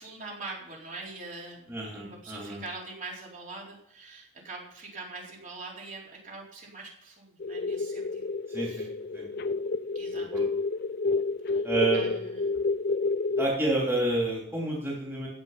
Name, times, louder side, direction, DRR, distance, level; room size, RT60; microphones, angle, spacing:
voice 1, 0.0-8.2 8.6-8.9 9.9-10.4 11.5-11.7 11.9-12.6, right 3 dB, 40° right, -3 dB, 4.0 m, -43 dB
voice 2, 1.7-2.6 8.5-8.9 9.1-9.2 10.1-10.4 11.6-12.1 13.4-15.3, right 2 dB, 10° right, -4 dB, 3.1 m, -29 dB
sound 1, 7.4-13.5, left 3 dB, 50° left, 0.4 m, -29 dB
14.5 x 8.7 x 5.7 m, 0.75 s
head